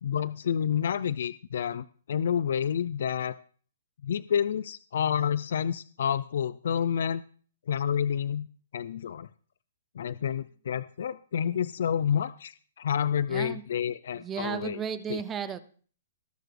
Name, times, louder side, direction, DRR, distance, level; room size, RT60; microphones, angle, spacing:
voice 1, 0.0-3.4 4.0-7.2 7.7-8.5 8.7-9.3 10.0-14.8 15.1-15.2, left 8 dB, 50° left, 16 dB, 0.4 m, -29 dB
voice 2, 13.3-13.6 14.1-15.6, right 7 dB, 10° right, 13 dB, 0.4 m, -34 dB
19.0 x 6.9 x 3.3 m, 0.43 s
hypercardioid pair, 180°, 0 cm